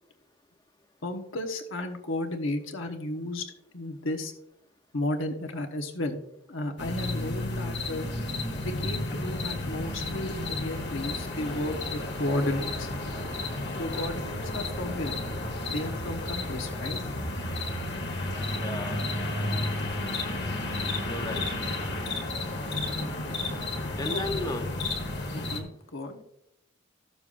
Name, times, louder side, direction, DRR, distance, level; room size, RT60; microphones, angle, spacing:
voice 1, 1.0-3.5 3.7-4.3 4.9-6.2 6.5-8.1 8.6-12.9 13.8-15.1 15.7-17.0 24.1-24.3 25.3-26.2, left 1 dB, 75° left, 4 dB, 1.2 m, -33 dB
sound 1, 6.8-25.6, left 2 dB, 55° left, 1.4 m, -32 dB
voice 2, 18.5-19.1 21.0-21.4 23.3-23.5 23.9-24.7, left 2 dB, 20° left, 7 dB, 0.7 m, -35 dB
13.5 x 6.8 x 2.5 m, 0.79 s
head